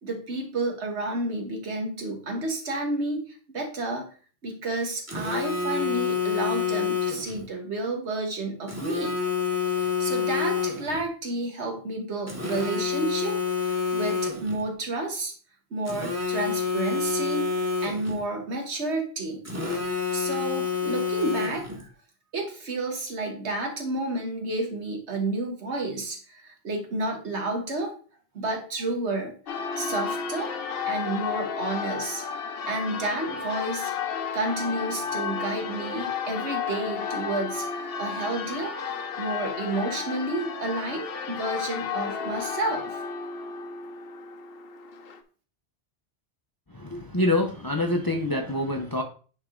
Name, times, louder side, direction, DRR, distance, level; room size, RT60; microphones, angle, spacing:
voice 1, 0.0-4.1 4.4-9.1 9.7-15.3 15.7-17.5 17.8-19.4 20.1-21.9 22.3-27.9 28.3-29.3 29.8-30.5 30.9-32.2 32.7-33.9 34.3-43.0, right 2 dB, 80° right, 1.7 m, -31 dB
Telephone, 5.1-7.4 8.7-11.1 12.3-14.6 15.9-18.2 19.5-21.8, left 6 dB, 15° right, 1.2 m, -28 dB
Church bell, 29.5-45.2, left 6 dB, 60° left, 0.9 m, -33 dB
voice 2, 46.7-49.0, left 1 dB, 25° left, 0.6 m, -26 dB
9.3 x 3.4 x 3.7 m
omnidirectional pair, 1.1 m